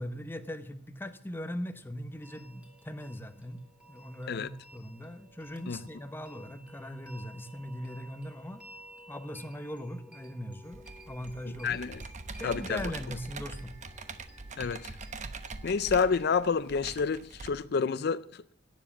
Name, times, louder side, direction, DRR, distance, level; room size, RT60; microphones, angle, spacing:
voice 1, 0.0-3.6 3.9-8.6 9.1-11.8 12.4-13.7, equal, 10° left, 0.9 m, -40 dB
sound 1, 2.1-16.3, right 1 dB, 5° right, 2.8 m, -54 dB
Computer keyboard, 10.7-17.5, right 3 dB, 40° right, 1.0 m, -43 dB
voice 2, 11.6-12.0 12.4-12.9 14.6-14.9 15.6-18.5, left 5 dB, 55° left, 0.5 m, -29 dB
17.5 x 7.5 x 7.1 m
head